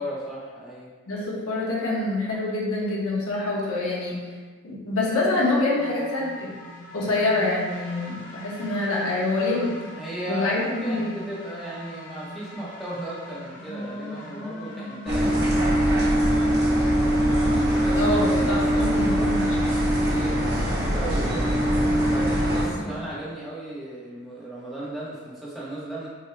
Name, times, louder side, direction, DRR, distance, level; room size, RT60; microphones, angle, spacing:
voice 1, 0.0-0.9 9.9-15.3 17.7-26.1, right 1 dB, ahead, -8 dB, 0.7 m, -35 dB
voice 2, 1.1-4.2 4.6-6.6 6.9-9.7 10.3-11.1 17.9-19.6, left 2 dB, 80° left, -5 dB, 1.1 m, -26 dB
sound 1, 5.8-23.1, equal, 40° left, 0.8 m, -39 dB
sound 2, 15.1-22.7, equal, 45° right, 1.0 m, -22 dB
6.2 x 2.1 x 3.3 m, 1.4 s
head